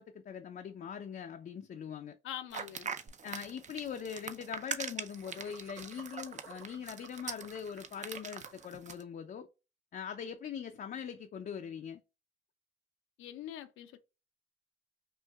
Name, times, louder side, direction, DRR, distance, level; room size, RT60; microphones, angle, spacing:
voice 1, 0.0-2.2 3.2-9.5 9.9-12.0, left 7 dB, 45° left, 0.5 m, -42 dB
voice 2, 2.2-2.9 13.2-14.0, left 11 dB, 85° left, 0.6 m, -44 dB
sound 1, 2.5-9.0, right 6 dB, 40° right, 0.6 m, -42 dB
Laughter, 3.1-3.2 3.4-3.5 3.7-3.9 5.1-8.8, right 5 dB, 80° right, 1.4 m, -53 dB
5.5 x 2.5 x 2.3 m
cardioid pair, 90°, 20 cm